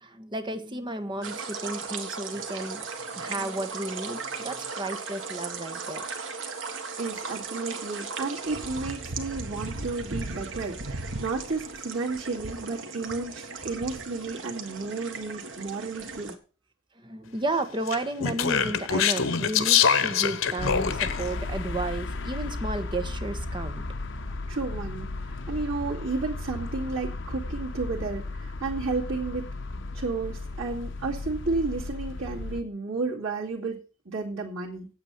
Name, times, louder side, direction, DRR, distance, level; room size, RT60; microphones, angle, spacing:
voice 1, 0.0-2.9 3.2-6.0 17.0-23.8, right 2 dB, 25° right, 1.3 m, -33 dB
sound 1, 1.2-16.3, right 4 dB, 70° right, 1.7 m, -37 dB
voice 2, 7.0-16.3 24.5-29.5 29.9-33.8 34.1-34.9, right 3 dB, 85° right, 2.4 m, -32 dB
Speech, 17.9-21.3, left 7 dB, 90° left, 1.0 m, -24 dB
sound 2, 20.6-32.6, left 2 dB, 65° left, 1.0 m, -35 dB
8.8 x 8.4 x 7.0 m
head